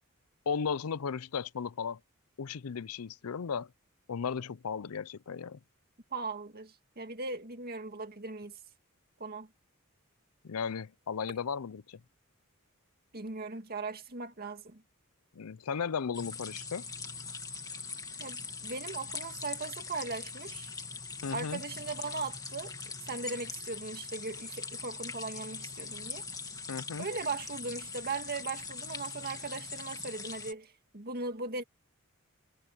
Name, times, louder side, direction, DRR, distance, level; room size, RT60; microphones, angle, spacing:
voice 1, 0.5-2.0 2.4-3.7 4.1-5.6 10.4-12.0 15.3-16.9 21.2-21.6 26.7-27.1, left 6 dB, 85° left, 0.5 m, -35 dB
voice 2, 6.1-8.6 9.2-9.5 13.1-14.8 18.2-20.7 21.3-22.7 23.1-26.3 27.0-31.6, right 3 dB, 45° right, 2.1 m, -38 dB
sound 1, 16.1-30.5, left 4 dB, 15° left, 2.4 m, -42 dB
head